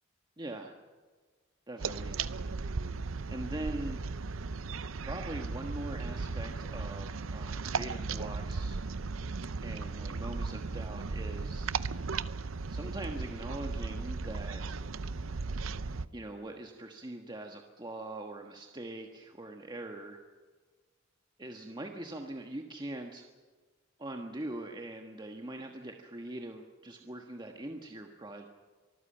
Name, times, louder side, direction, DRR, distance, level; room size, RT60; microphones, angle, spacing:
voice 1, 0.4-0.7 1.7-2.2 3.3-4.0 5.0-8.8 9.6-11.7 12.7-14.8 16.1-20.2 21.4-23.2 24.0-28.5, right 1 dB, 20° right, 3 dB, 1.4 m, -42 dB
sound 1, 1.8-16.1, right 4 dB, 90° right, 0.7 m, -36 dB
24.5 x 14.5 x 8.9 m, 1.4 s
head